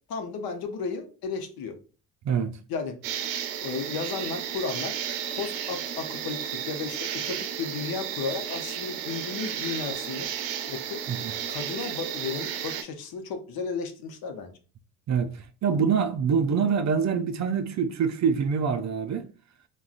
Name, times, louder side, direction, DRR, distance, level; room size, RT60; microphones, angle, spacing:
voice 1, 0.1-1.7 2.7-3.0 3.6-4.9 5.3-10.3 10.7-11.0 11.5-14.5, left 5 dB, 60° left, 0.8 m, -34 dB
voice 2, 2.2-2.6 11.1-11.3 15.1-15.3 15.6-19.3, right 6 dB, 45° right, 0.5 m, -25 dB
sound 1, 3.0-12.8, right 9 dB, 85° right, 0.6 m, -33 dB
3.6 x 2.2 x 2.4 m
supercardioid pair, 70°, 41 cm